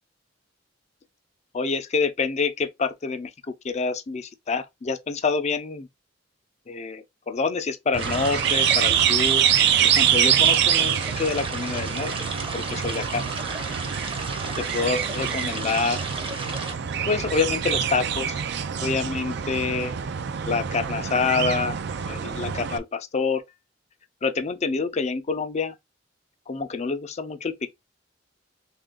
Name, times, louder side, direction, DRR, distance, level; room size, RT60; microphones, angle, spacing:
voice 1, 1.5-3.3 3.6-5.9 6.7-9.4 9.8-12.1 12.5-13.2 14.6-16.0 17.1-18.4 18.8-19.9 20.5-21.8 22.1-23.4 24.2-25.7 26.5-27.7, left 4 dB, 35° left, 0.5 m, -27 dB
sound 1, 7.9-22.8, right 9 dB, 60° right, 0.4 m, -25 dB
sound 2, 8.0-16.7, right 3 dB, 30° right, 0.7 m, -34 dB
3.2 x 2.5 x 3.7 m
head